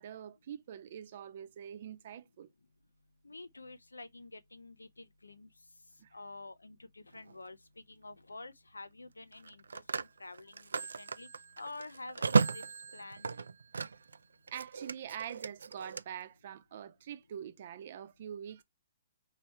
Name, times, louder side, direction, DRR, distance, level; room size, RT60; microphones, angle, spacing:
voice 1, 0.0-2.5 6.0-6.1 14.5-18.6, right 9 dB, 50° right, 0.7 m, -44 dB
voice 2, 3.2-5.5 6.1-11.3 11.6-12.6 12.9-13.4, left 2 dB, 85° left, 0.5 m, -49 dB
Telephone, 7.1-7.4 9.3-14.2 14.5-16.0, right 4 dB, 75° right, 0.3 m, -34 dB
4.3 x 2.8 x 4.3 m
figure-of-eight pair, 125°, 0 cm